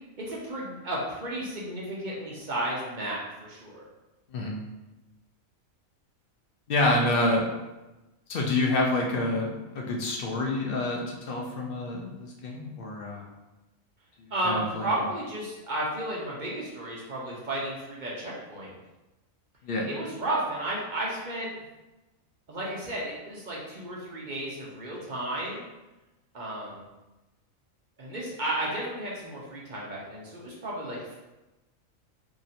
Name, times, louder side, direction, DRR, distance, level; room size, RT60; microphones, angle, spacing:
voice 1, 0.2-3.8 14.3-18.7 19.8-21.5 22.5-25.6 26.3-26.8 28.0-31.2, right 1 dB, 45° right, -5 dB, 0.7 m, -33 dB
voice 2, 4.3-4.6 6.7-7.5 8.3-13.2 14.4-14.9 19.6-19.9, left 2 dB, 60° left, 0 dB, 0.6 m, -27 dB
2.9 x 2.5 x 4.1 m, 1.1 s
omnidirectional pair, 1.4 m